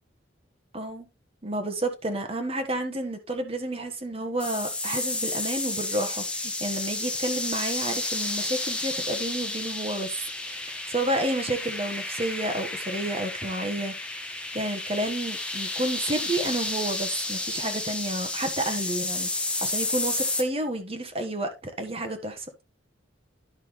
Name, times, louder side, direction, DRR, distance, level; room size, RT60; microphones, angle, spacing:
voice 1, 0.7-1.1 1.4-10.1 10.4-13.9 14.5-22.5, right 1 dB, 30° right, 1.4 m, -30 dB
sound 1, 4.4-20.4, left 2 dB, 5° left, 1.1 m, -31 dB
11.0 x 5.8 x 3.2 m
head